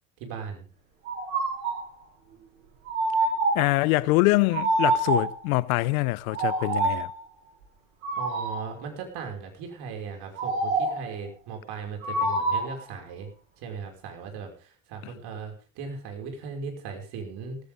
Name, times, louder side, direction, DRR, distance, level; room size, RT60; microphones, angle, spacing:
voice 1, 0.2-0.7 8.2-13.3 13.6-17.6, right 5 dB, 65° right, 5.8 m, -38 dB
sound 1, 1.1-1.9 2.9-3.8 4.5-5.4 6.3-7.2 8.0-8.7 10.4-11.1 12.0-12.8, right 2 dB, 85° right, 8.0 m, -26 dB
voice 2, 3.5-7.1, left 21 dB, 80° left, 0.9 m, -24 dB
18.0 x 15.5 x 3.7 m
hypercardioid pair, 80°, 41 cm